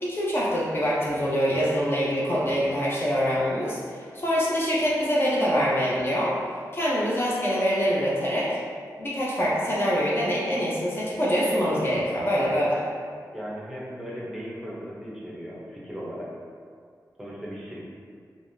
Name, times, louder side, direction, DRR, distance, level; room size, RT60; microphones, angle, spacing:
voice 1, 0.0-6.4 6.7-8.6 9.0-12.9, equal, 35° left, -6 dB, 0.5 m, -25 dB
voice 2, 13.3-16.3 17.2-17.8, equal, 5° right, -6 dB, 0.7 m, -37 dB
3.3 x 2.4 x 2.6 m, 2.1 s
wide cardioid pair, 70°, 7 cm